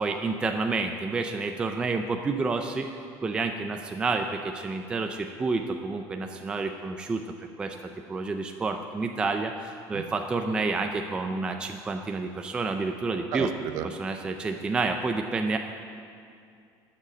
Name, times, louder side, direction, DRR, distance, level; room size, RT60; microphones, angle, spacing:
voice 1, 0.0-2.9 3.2-7.2 7.6-7.8 8.1-13.5 13.8-15.6, right 3 dB, 10° right, 4 dB, 0.4 m, -29 dB
voice 2, 13.3-13.9, right 10 dB, 45° right, 9 dB, 0.7 m, -32 dB
12.5 x 6.6 x 9.0 m, 2.4 s
cardioid pair, 175°, 8 cm